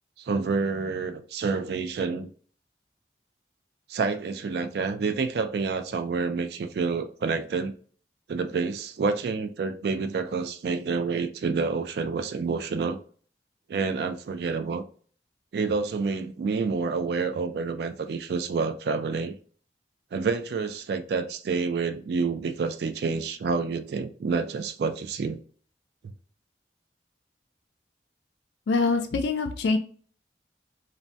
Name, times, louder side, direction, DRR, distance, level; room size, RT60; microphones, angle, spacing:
voice 1, 0.2-2.3 3.9-7.7 8.3-13.0 13.7-14.8 15.5-19.4 20.1-25.4, right 4 dB, 65° right, 0.3 m, -28 dB
voice 2, 28.7-29.8, left 3 dB, 75° left, 0.4 m, -24 dB
2.6 x 2.1 x 3.2 m
head